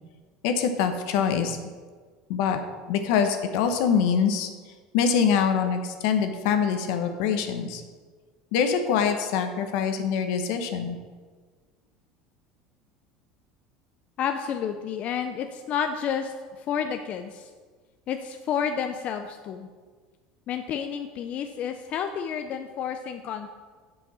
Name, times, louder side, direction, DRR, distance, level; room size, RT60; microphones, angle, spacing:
voice 1, 0.4-1.6 2.3-2.6 2.9-4.5 4.9-7.8 8.5-11.0, left 7 dB, 75° left, 7 dB, 1.1 m, -24 dB
voice 2, 14.2-17.5 18.1-19.7 20.5-23.5, left 7 dB, 45° left, 7 dB, 0.5 m, -30 dB
7.6 x 6.2 x 6.3 m, 1.5 s
supercardioid pair, 125°, 3 cm